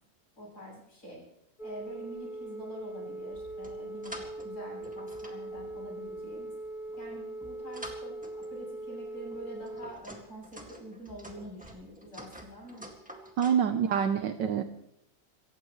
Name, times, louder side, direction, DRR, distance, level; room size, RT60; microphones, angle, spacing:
voice 1, 0.4-1.2 1.6-6.5 7.0-12.9 13.7-14.2, right 1 dB, 50° left, -3 dB, 8.7 m, -46 dB
Telephone, 1.6-9.9, right 2 dB, 35° left, 0.8 m, -41 dB
sound 1, 3.3-4.5 4.8-6.2 6.9-8.6 9.3-13.6, equal, 5° right, 1.8 m, -48 dB
voice 2, 13.4-14.6, right 8 dB, 70° right, 8 dB, 1.4 m, -26 dB
26.5 x 15.5 x 3.2 m, 0.75 s
omnidirectional pair, 2.1 m